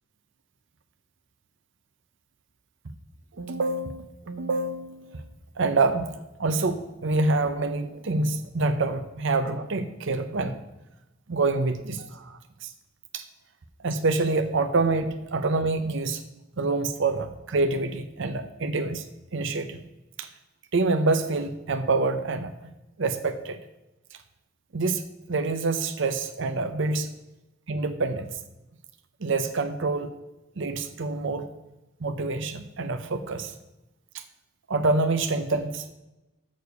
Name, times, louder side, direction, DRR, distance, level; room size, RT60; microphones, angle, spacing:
voice 1, 3.3-5.3 5.6-6.1 6.4-10.6 11.3-12.7 13.1-13.2 13.8-16.2 16.6-19.0 19.3-19.8 20.2-20.3 20.7-22.5 23.0-23.6 24.7-25.0 25.3-27.1 27.7-28.3 29.2-30.1 30.6-31.5 32.0-33.5 34.1-34.2 34.7-35.9, right 3 dB, 65° right, 8 dB, 0.7 m, -26 dB
6.8 x 6.6 x 6.8 m, 0.99 s
head